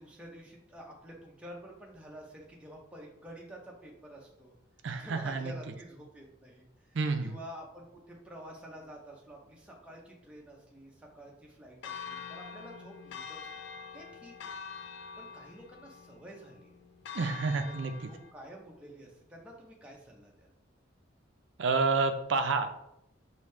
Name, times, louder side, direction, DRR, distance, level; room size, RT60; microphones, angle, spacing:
voice 1, 0.0-4.5 5.0-13.7 13.9-14.5 15.2-16.7 17.7-17.8 18.0-20.5, right 1 dB, 5° right, -2 dB, 0.7 m, -49 dB
voice 2, 4.8-5.5 6.9-7.4 17.1-17.9 21.6-22.7, right 4 dB, 70° right, 6 dB, 0.5 m, -29 dB
Church bell, 11.8-18.3, left 6 dB, 65° left, 0.3 m, -45 dB
5.0 x 2.7 x 3.3 m, 0.81 s
head